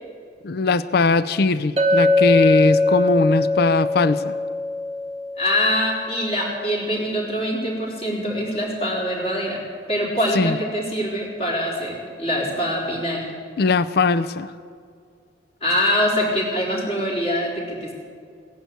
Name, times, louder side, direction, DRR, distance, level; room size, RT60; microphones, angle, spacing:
voice 1, 0.4-4.3 10.3-10.6 13.6-14.5, left 3 dB, 60° left, 15 dB, 0.5 m, -20 dB
Chink clink, 1.8-6.2, left 3 dB, 35° right, 0.9 m, -21 dB
voice 2, 5.4-9.6 9.9-13.3 15.6-17.9, equal, 35° left, -2 dB, 3.8 m, -24 dB
16.5 x 10.5 x 8.1 m, 2.2 s
head